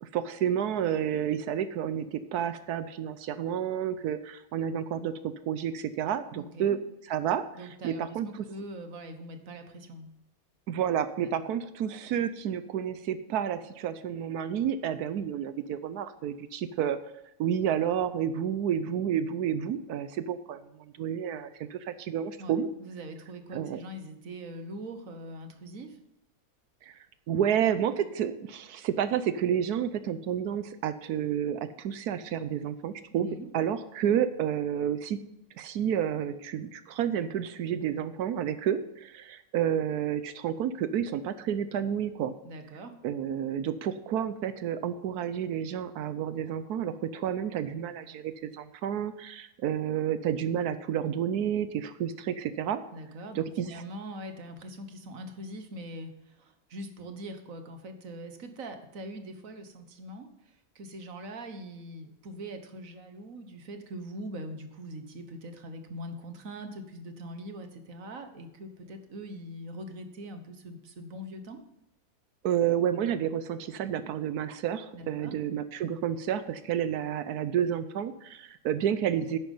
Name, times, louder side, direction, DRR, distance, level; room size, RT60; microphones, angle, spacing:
voice 1, 0.0-6.8 7.1-8.3 10.7-17.0 17.4-22.7 23.5-23.8 26.8-27.0 27.3-33.3 33.5-35.2 35.6-42.3 43.0-52.8 53.3-53.7 72.4-79.4, right 9 dB, 85° right, 12 dB, 1.2 m, -30 dB
voice 2, 6.3-6.8 7.5-10.1 11.2-11.5 22.4-26.0 33.1-33.5 42.4-43.0 52.9-71.6 74.9-75.4, right 1 dB, 60° right, 7 dB, 1.7 m, -42 dB
10.5 x 8.8 x 5.4 m, 0.84 s
omnidirectional pair, 1.6 m